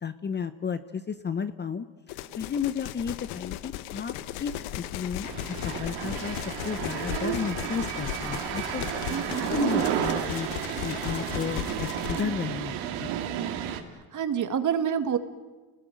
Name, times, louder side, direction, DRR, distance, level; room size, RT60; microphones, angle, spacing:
voice 1, 0.0-6.4 6.6-9.1 9.5-10.5 10.8-13.1, left 7 dB, 20° left, 11 dB, 0.8 m, -33 dB
sound 1, 2.1-12.2, left 13 dB, 80° left, 1.2 m, -36 dB
sound 2, 5.2-13.8, right 9 dB, 85° right, 2.9 m, -32 dB
voice 2, 9.1-9.5 14.1-15.2, right 8 dB, 40° right, 9 dB, 2.0 m, -27 dB
30.0 x 19.5 x 9.3 m, 1.3 s
cardioid pair, 145°, 48 cm